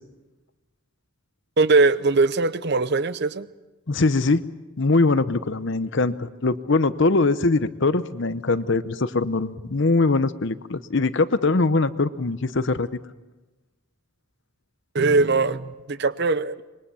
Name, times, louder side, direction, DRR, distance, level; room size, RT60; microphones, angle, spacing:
voice 1, 1.6-3.5 14.9-16.6, right 3 dB, 50° right, 15 dB, 0.7 m, -21 dB
voice 2, 3.9-4.4 4.8-12.9, left 3 dB, 55° left, 14 dB, 0.8 m, -22 dB
25.5 x 22.0 x 7.0 m, 1.1 s
head